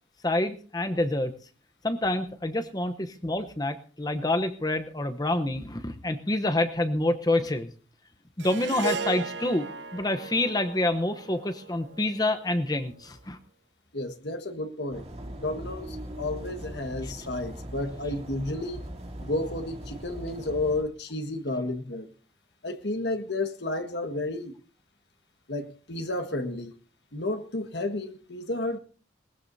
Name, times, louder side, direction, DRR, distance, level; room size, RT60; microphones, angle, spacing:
voice 1, 0.2-1.3 1.8-7.7 8.4-9.7 9.9-13.4 17.0-17.1, left 1 dB, 20° left, 0.9 m, -27 dB
Harp, 8.4-12.8, right 6 dB, 80° right, 0.8 m, -37 dB
voice 2, 13.9-15.0 15.3-18.9 19.2-22.1 22.6-24.6 25.5-26.8 27.1-28.8, left 2 dB, 70° left, 1.6 m, -32 dB
sound 1, 14.9-20.8, right 1 dB, 35° right, 2.5 m, -40 dB
21.0 x 19.5 x 2.7 m
head